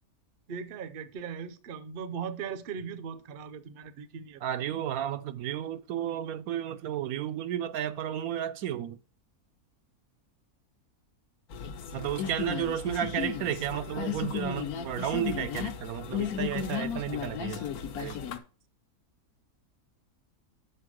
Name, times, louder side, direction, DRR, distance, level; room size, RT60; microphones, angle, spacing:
voice 1, 0.5-4.7, right 6 dB, 50° right, 0.7 m, -39 dB
voice 2, 4.4-9.0 11.9-17.7 18.0-18.3, right 10 dB, 75° right, 1.0 m, -33 dB
sound 1, 11.5-18.4, left 8 dB, 75° left, 1.3 m, -35 dB
6.7 x 4.4 x 6.2 m
omnidirectional pair, 1.6 m